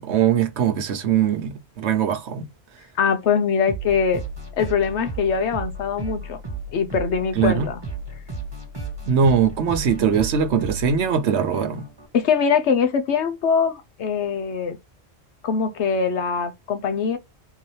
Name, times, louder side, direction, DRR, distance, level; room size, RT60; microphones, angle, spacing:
voice 1, 0.0-2.5 7.3-7.7 9.0-11.9, right 7 dB, 75° right, 1.0 m, -21 dB
voice 2, 3.0-4.2 4.6-6.4 6.7-7.8 12.1-14.8 15.4-17.2, left 6 dB, 80° left, 1.1 m, -22 dB
sound 1, 3.7-12.1, right 3 dB, 20° right, 1.6 m, -34 dB
3.8 x 2.7 x 3.1 m
omnidirectional pair, 1.2 m